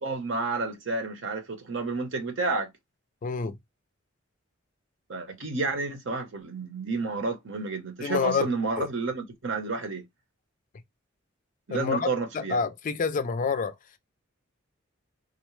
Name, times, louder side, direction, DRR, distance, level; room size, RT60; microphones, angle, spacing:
voice 1, 0.0-2.7 5.1-10.0 11.7-12.6, right 3 dB, 60° right, 0.8 m, -30 dB
voice 2, 3.2-3.6 8.0-8.5 8.8-8.9 11.7-12.1 12.3-13.7, left 5 dB, 40° left, 0.3 m, -27 dB
3.7 x 2.1 x 3.0 m
head